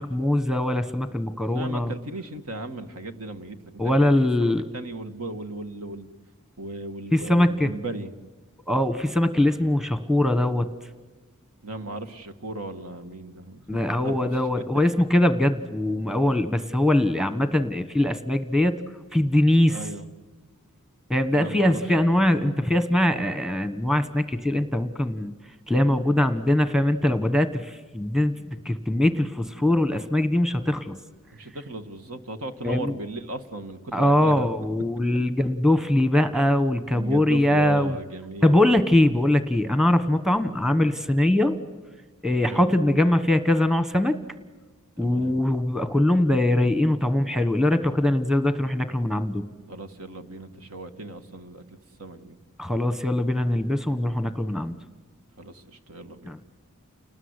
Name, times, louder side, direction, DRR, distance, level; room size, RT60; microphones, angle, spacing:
voice 1, 0.0-1.9 3.8-4.7 7.1-7.7 8.7-10.7 13.7-18.7 19.1-19.9 21.1-25.3 25.7-31.0 32.6-32.9 33.9-38.0 38.4-41.6 42.2-44.2 45.0-49.5 52.6-54.7 56.2-56.4, left 1 dB, 5° right, 11 dB, 1.3 m, -22 dB
voice 2, 1.4-3.8 4.1-6.1 6.6-8.1 11.6-13.6 14.0-14.3 19.7-20.1 21.3-21.8 22.1-22.3 31.3-34.5 36.9-38.8 42.5-42.6 45.0-45.3 49.7-52.4 55.4-56.4, right 2 dB, 70° right, 9 dB, 1.9 m, -36 dB
30.0 x 20.0 x 9.8 m, 1.3 s
head